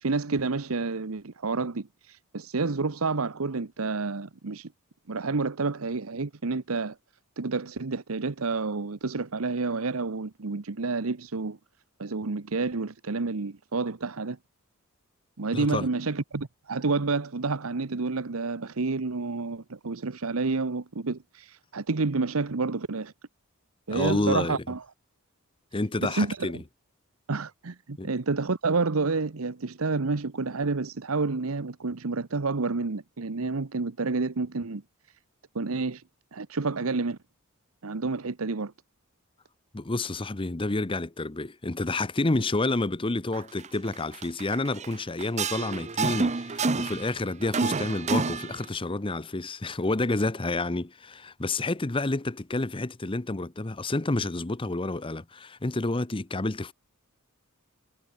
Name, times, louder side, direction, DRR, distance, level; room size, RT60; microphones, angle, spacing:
voice 1, 0.0-4.7 5.1-7.0 7.4-11.6 12.0-14.4 15.4-23.1 23.9-24.8 26.0-26.6 27.3-34.8 35.5-36.0 36.3-37.2 37.8-38.7, right 3 dB, 80° right, 0.9 m, -29 dB
voice 2, 15.5-15.9 23.9-24.6 25.7-26.6 28.0-28.1 39.7-56.7, left 2 dB, 25° left, 0.8 m, -29 dB
sound 1, 43.3-43.7 43.9-44.9 45.2-47.1 47.4-48.6, right 4 dB, 35° right, 0.7 m, -28 dB
head